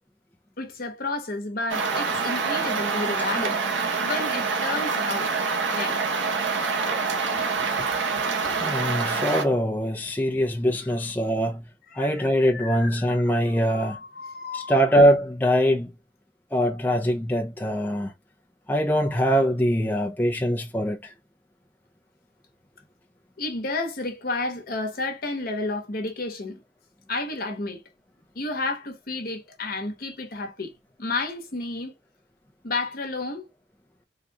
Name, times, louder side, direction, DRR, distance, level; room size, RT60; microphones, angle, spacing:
voice 1, 0.6-3.6 4.0-5.3 5.7-6.0 7.5-8.6 11.9-14.8 23.4-26.6 27.1-27.8 28.3-30.7 31.0-31.9 32.6-33.5, left 2 dB, 55° left, 0.9 m, -32 dB
sound 1, 1.7-9.4, right 4 dB, 90° right, 0.8 m, -26 dB
voice 2, 8.6-11.6 11.9-14.0 14.5-15.9 16.5-18.1 18.7-21.1, equal, 10° left, 0.4 m, -23 dB
3.6 x 2.3 x 2.7 m
head